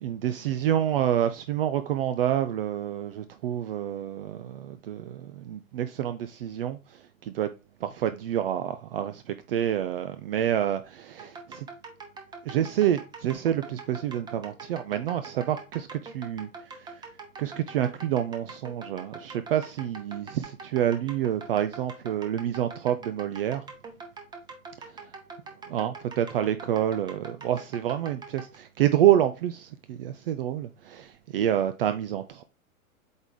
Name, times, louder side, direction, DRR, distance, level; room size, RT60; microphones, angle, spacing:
voice 1, 0.0-7.5 7.8-11.7 12.5-16.9 17.4-23.6 25.7-32.4, right 11 dB, 45° right, 0.5 m, -28 dB
sound 1, 11.2-28.6, right 4 dB, 10° right, 0.8 m, -44 dB
8.0 x 3.4 x 3.6 m
figure-of-eight pair, 105°, 42 cm